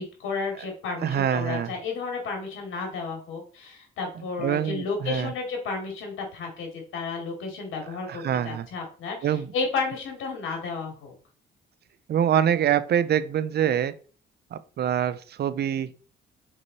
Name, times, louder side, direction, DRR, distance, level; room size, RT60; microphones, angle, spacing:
voice 1, 0.0-9.3 9.5-11.1, left 4 dB, 85° left, 2 dB, 2.6 m, -32 dB
voice 2, 1.0-1.7 4.4-5.3 8.1-8.7 9.2-9.5 12.1-13.9 14.5-15.9, right 9 dB, 55° right, 15 dB, 0.6 m, -25 dB
5.4 x 4.9 x 4.2 m, 0.40 s
cardioid pair, 90°, 20 cm